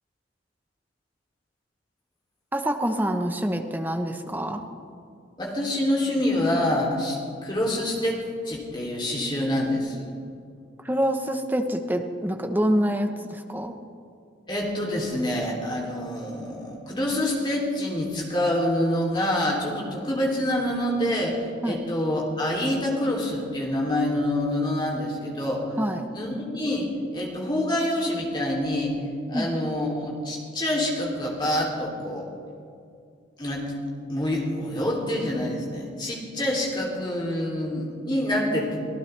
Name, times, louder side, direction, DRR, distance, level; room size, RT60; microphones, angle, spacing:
voice 1, 2.5-4.6 10.8-13.7 21.6-21.8 25.8-26.1 29.3-29.5, equal, 10° right, 5 dB, 0.9 m, -26 dB
voice 2, 5.4-10.0 14.5-25.7 26.1-29.0 29.3-32.3 33.4-33.7 34.1-38.8, left 1 dB, 25° left, -2 dB, 3.0 m, -26 dB
25.0 x 15.5 x 3.4 m, 2.4 s
head